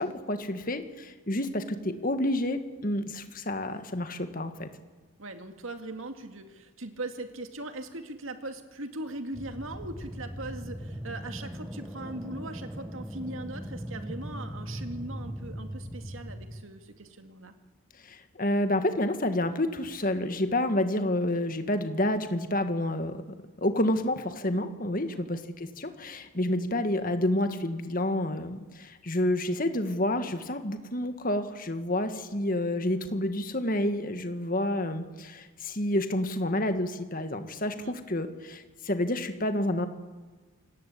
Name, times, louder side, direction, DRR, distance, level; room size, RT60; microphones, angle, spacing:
voice 1, 0.0-4.7 18.0-23.2 23.6-39.9, left 1 dB, 40° left, 8 dB, 1.8 m, -29 dB
voice 2, 5.2-17.5 25.0-25.3 37.8-38.0, right 2 dB, 70° right, 6 dB, 2.3 m, -40 dB
sound 1, 9.3-16.7, equal, 5° right, 1.0 m, -39 dB
27.5 x 18.5 x 8.6 m, 1.3 s
head